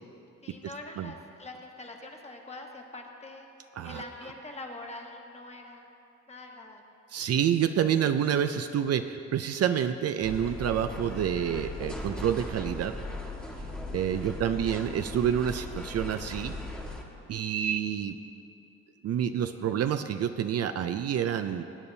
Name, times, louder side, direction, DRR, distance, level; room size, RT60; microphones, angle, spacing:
voice 1, 0.4-3.5 3.8-5.9 6.3-6.9 14.1-14.7, left 2 dB, 20° left, 1 dB, 1.4 m, -44 dB
voice 2, 7.1-13.0 13.9-16.5 17.3-18.2 19.0-21.6, right 9 dB, 55° right, 9 dB, 0.5 m, -28 dB
sound 1, 10.2-17.0, left 2 dB, 5° left, 1.4 m, -38 dB
20.0 x 8.5 x 2.7 m, 2.7 s
cardioid pair, 90°, 30 cm